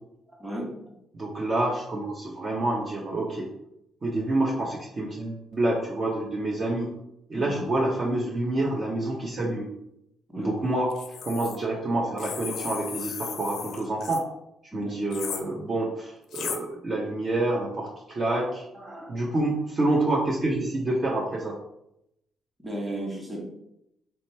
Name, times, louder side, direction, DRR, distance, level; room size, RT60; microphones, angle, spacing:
voice 1, 0.4-0.7 7.3-7.6 10.3-10.5 14.7-15.0 18.7-19.1 22.6-23.5, right 1 dB, 15° right, -1 dB, 1.5 m, -35 dB
voice 2, 1.1-3.5 4.0-6.9 7.3-9.7 10.4-10.9 11.2-14.2 14.7-18.6 19.1-21.6, right 2 dB, 40° right, -2 dB, 0.7 m, -27 dB
sound 1, 10.9-11.6 12.2-14.2 15.1-15.4 16.3-16.6, left 7 dB, 75° left, 0.5 m, -35 dB
3.3 x 2.9 x 4.3 m, 0.80 s
cardioid pair, 90°, 0 cm